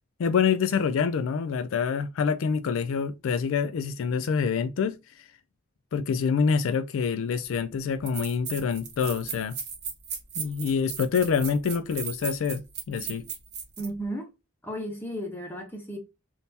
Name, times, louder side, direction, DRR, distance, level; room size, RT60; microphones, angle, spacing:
voice 1, 0.2-5.0 5.9-9.6 10.4-13.3, left 6 dB, 65° left, 0.3 m, -26 dB
sound 1, 7.5-7.6 8.1-13.9, right 7 dB, 50° right, 0.9 m, -36 dB
voice 2, 13.8-14.3 14.6-16.0, right 1 dB, 10° left, 1.0 m, -34 dB
3.6 x 2.6 x 2.7 m
head